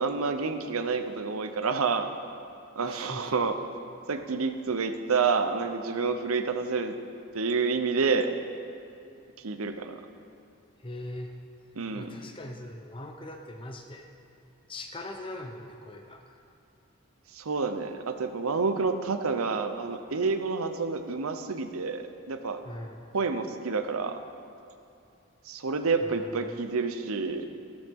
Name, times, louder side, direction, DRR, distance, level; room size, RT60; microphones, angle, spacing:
voice 1, 0.0-2.1 2.8-3.5 4.1-6.9 7.3-8.4 9.4-10.0 11.8-12.2 17.3-22.6 23.1-24.2 25.4-27.5, right 4 dB, 85° right, 8 dB, 0.8 m, -29 dB
voice 2, 2.8-3.3 10.8-11.4 11.9-14.1 14.7-16.4 22.6-23.1 26.5-26.6, left 1 dB, 25° left, 4 dB, 0.8 m, -41 dB
15.5 x 12.5 x 3.7 m, 2.5 s
head